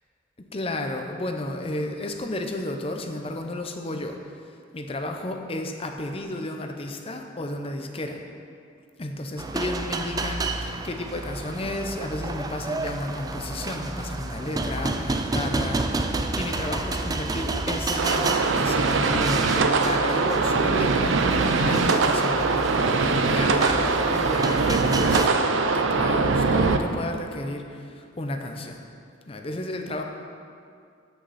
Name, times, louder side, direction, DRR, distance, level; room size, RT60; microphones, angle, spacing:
voice 1, 0.5-8.2 9.0-25.3 25.7-28.8 29.3-30.0, left 1 dB, 30° left, 4 dB, 0.7 m, -32 dB
sound 1, 9.4-25.3, right 2 dB, 20° right, 0.4 m, -30 dB
sound 2, 18.0-26.8, right 4 dB, 80° right, 0.6 m, -22 dB
13.5 x 5.8 x 4.2 m, 2.3 s
head